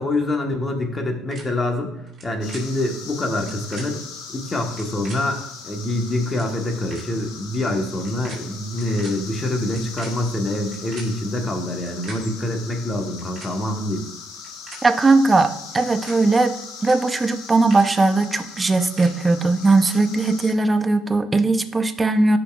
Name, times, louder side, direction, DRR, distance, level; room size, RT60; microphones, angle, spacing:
voice 1, 0.0-1.9 2.2-4.0 4.3-14.0, left 1 dB, 20° left, 3 dB, 1.2 m, -25 dB
sound 1, 1.3-1.4 2.1-2.2 2.5-2.6 3.3-3.8 4.6-5.2 5.9-6.0 6.2-6.5 6.9-7.0 7.9-8.4 8.7-9.1 9.6-11.1 11.7-12.2 13.0-13.5 14.3-14.8 15.7-16.1 16.7-16.9 17.3-17.9 18.5-19.1, right 3 dB, 35° right, 2.5 m, -40 dB
sound 2, 2.4-20.5, left 5 dB, 85° left, 1.2 m, -39 dB
voice 2, 14.8-22.4, right 3 dB, 15° right, 9 dB, 0.6 m, -19 dB
13.0 x 5.4 x 2.3 m, 0.89 s
cardioid pair, 125°, 0 cm